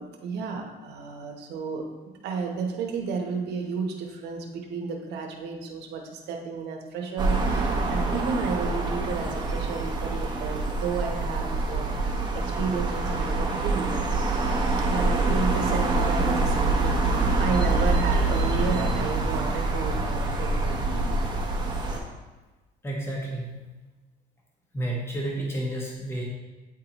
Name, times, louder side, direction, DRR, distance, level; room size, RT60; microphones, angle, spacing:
voice 1, 0.0-14.0 14.4-21.2, right 5 dB, 80° right, 2 dB, 0.9 m, -32 dB
sound 1, 7.2-22.0, right 2 dB, 25° right, 1.1 m, -25 dB
voice 2, 22.8-23.6 24.7-26.2, right 1 dB, 15° left, -4 dB, 1.4 m, -31 dB
8.9 x 3.7 x 3.0 m, 1.2 s
cardioid pair, 110°, 17 cm